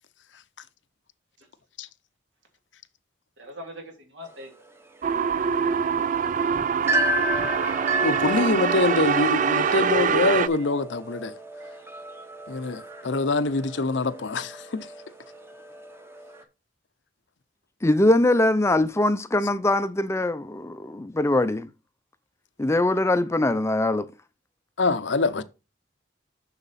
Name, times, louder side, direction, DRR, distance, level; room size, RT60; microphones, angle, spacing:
voice 1, 3.4-4.5, equal, 75° right, 2.6 m, -41 dB
sound 1, 4.2-16.4, right 1 dB, 15° right, 0.9 m, -33 dB
sound 2, 5.0-10.5, right 6 dB, 45° right, 0.4 m, -24 dB
voice 2, 8.0-11.3 12.5-14.9 24.8-25.4, left 3 dB, 75° left, 0.7 m, -25 dB
voice 3, 17.8-21.7 22.6-24.1, left 1 dB, 15° left, 0.5 m, -22 dB
6.9 x 6.5 x 4.1 m
head